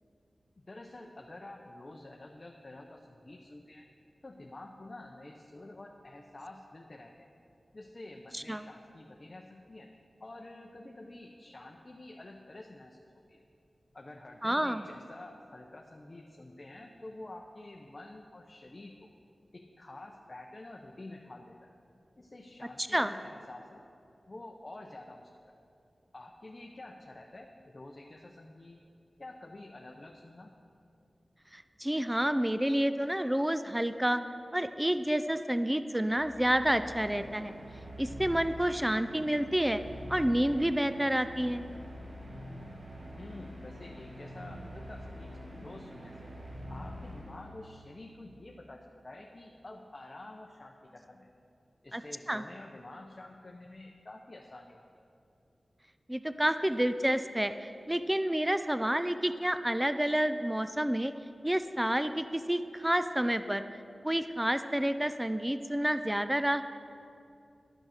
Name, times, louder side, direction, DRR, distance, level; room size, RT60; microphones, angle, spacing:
voice 1, 0.6-3.9 4.2-7.3 7.7-9.9 10.2-13.0 13.3-13.4 13.9-19.1 19.5-21.7 22.2-23.8 24.3-25.3 26.1-28.8 29.2-30.5 43.1-46.3 46.7-51.3 51.8-54.8, left 2 dB, 40° left, 1 dB, 0.7 m, -48 dB
voice 2, 8.3-8.7 14.4-14.9 22.9-23.1 31.5-34.2 34.5-37.5 38.0-39.8 40.1-41.7 51.9-52.0 52.3-52.4 56.1-61.1 61.4-63.7 64.0-66.6, right 1 dB, 10° right, 11 dB, 0.4 m, -29 dB
sound 1, 36.1-47.8, equal, 90° right, 1.8 m, -45 dB
12.0 x 6.3 x 6.4 m, 2.5 s
wide cardioid pair, 80°, 0 cm